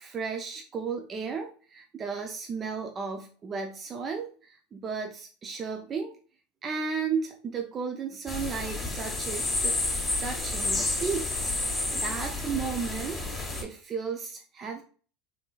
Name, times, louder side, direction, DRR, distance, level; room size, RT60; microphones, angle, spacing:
voice 1, 0.0-6.1 6.6-9.8 10.2-14.8, right 5 dB, 35° right, 3 dB, 0.5 m, -34 dB
sound 1, 8.3-13.6, left 2 dB, 10° left, 1.3 m, -30 dB
3.5 x 2.9 x 2.3 m, 0.40 s
hypercardioid pair, 90°, 0 cm